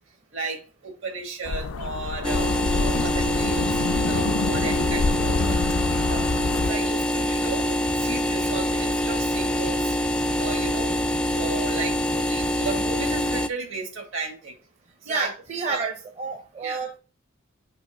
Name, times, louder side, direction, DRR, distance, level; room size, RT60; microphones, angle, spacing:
voice 1, 0.3-5.6 5.9-6.3 6.7-9.9 10.4-14.6 15.0-15.3 15.7-15.9 16.6-16.8, right 4 dB, 65° right, 1.9 m, -34 dB
sound 1, 1.4-6.7, left 4 dB, 85° left, 0.5 m, -27 dB
sound 2, 2.2-13.5, equal, 5° left, 0.3 m, -25 dB
voice 2, 15.1-17.0, right 4 dB, 35° right, 0.7 m, -30 dB
6.7 x 2.9 x 5.1 m
head